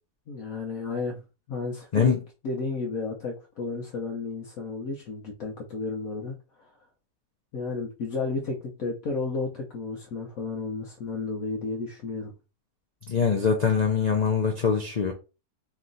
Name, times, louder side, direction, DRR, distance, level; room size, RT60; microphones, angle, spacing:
voice 1, 0.3-1.2 1.5-2.1 2.4-6.7 7.5-12.3, left 3 dB, 65° left, 0 dB, 1.1 m, -32 dB
voice 2, 13.1-15.1, left 6 dB, 90° left, 2 dB, 0.3 m, -23 dB
3.2 x 2.9 x 3.8 m, 0.30 s
omnidirectional pair, 1.7 m